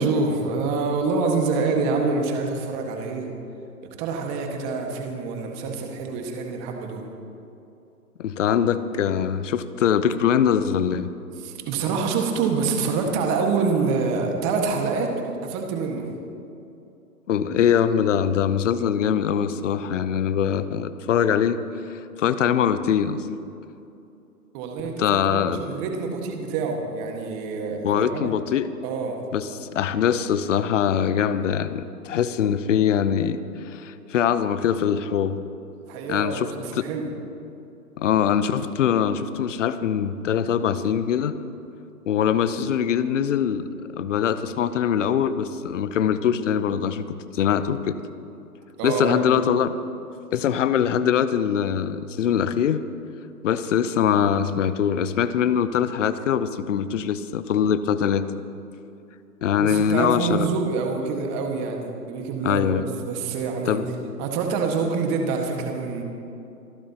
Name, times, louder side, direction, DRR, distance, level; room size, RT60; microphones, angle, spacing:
voice 1, 0.0-3.3 4.0-7.1 11.4-16.1 24.5-28.3 28.8-29.2 35.8-37.1 48.8-49.3 59.6-63.8 64.2-66.0, right 4 dB, 25° right, 2 dB, 1.7 m, -26 dB
voice 2, 8.2-11.1 17.3-21.6 21.9-23.2 25.0-25.6 27.8-28.7 29.3-33.4 33.6-35.4 36.1-36.5 36.7-36.8 38.0-41.3 42.1-43.7 44.0-47.1 47.3-48.0 48.8-49.8 50.3-52.8 53.4-58.3 59.4-60.5 62.4-62.8 63.7-63.9, left 8 dB, 50° left, 13 dB, 0.8 m, -22 dB
27.0 x 12.5 x 2.9 m, 2.8 s
hypercardioid pair, 140°, 47 cm